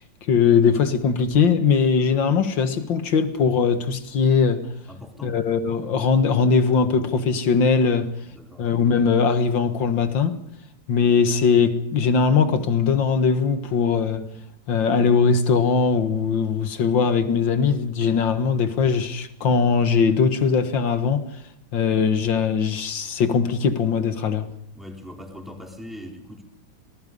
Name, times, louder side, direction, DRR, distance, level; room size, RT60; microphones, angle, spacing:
voice 1, 0.3-4.7 5.2-8.1 8.6-10.4 10.9-14.3 14.7-21.3 21.7-24.5, left 5 dB, 70° left, 2.2 m, -20 dB
voice 2, 4.9-5.4 8.0-8.6 24.7-26.4, left 1 dB, ahead, 4.3 m, -41 dB
26.0 x 20.0 x 5.5 m
omnidirectional pair, 2.1 m